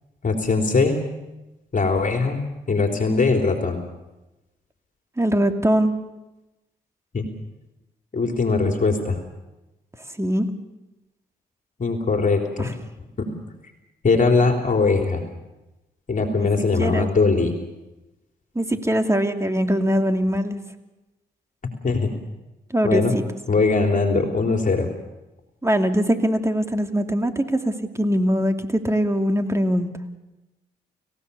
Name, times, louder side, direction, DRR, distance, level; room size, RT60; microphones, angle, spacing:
voice 1, 0.2-1.0 1.7-3.8 7.1-7.3 8.1-9.2 11.8-12.7 13.2-13.3 14.0-15.2 16.1-17.5 21.8-22.1 22.8-23.1 23.5-24.9, left 4 dB, 45° left, 3 dB, 3.7 m, -21 dB
voice 2, 5.2-5.9 10.2-10.5 12.6-12.7 16.3-17.1 18.5-20.6 22.7-23.2 25.6-29.9, equal, 15° right, 5 dB, 2.8 m, -22 dB
30.0 x 16.5 x 7.1 m, 1.0 s
supercardioid pair, 50°, 19 cm